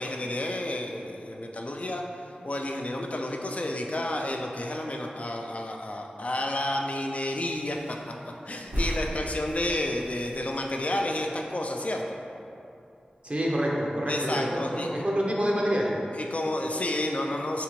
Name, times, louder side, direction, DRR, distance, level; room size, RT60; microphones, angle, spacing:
voice 1, 0.0-2.0 2.4-8.1 8.5-12.2 14.1-15.0 16.1-17.6, left 1 dB, 45° left, 1 dB, 0.3 m, -31 dB
sound 1, 7.1-12.8 13.0-13.1 13.3-14.3 14.5-14.8, equal, 90° right, 1.3 m, -38 dB
voice 2, 13.2-15.9, equal, 40° right, -3 dB, 0.7 m, -27 dB
3.7 x 3.3 x 3.0 m, 2.6 s
wide cardioid pair, 45°, 3 cm